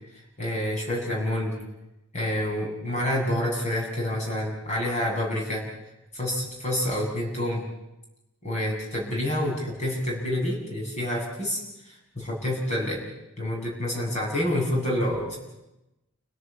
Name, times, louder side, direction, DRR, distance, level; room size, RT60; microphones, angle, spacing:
voice 1, 0.4-1.5 2.1-5.6 6.1-7.6 8.4-11.6 11.8-13.0 13.4-15.4, left 1 dB, 30° left, -2 dB, 7.9 m, -28 dB
29.5 x 17.5 x 8.5 m, 0.96 s
head